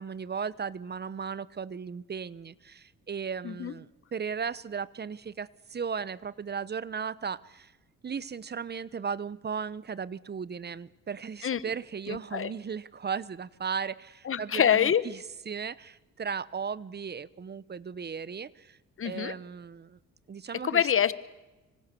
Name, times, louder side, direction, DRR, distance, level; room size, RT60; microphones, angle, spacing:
voice 1, 0.0-7.7 8.0-18.8 19.0-20.0 20.3-20.9, right 6 dB, 35° right, 20 dB, 1.0 m, -36 dB
voice 2, 12.1-12.5 14.3-15.0 19.0-19.3 20.6-21.1, left 8 dB, 45° left, 16 dB, 1.4 m, -25 dB
25.5 x 25.0 x 6.9 m, 1.1 s
cardioid pair, 90°, 30 cm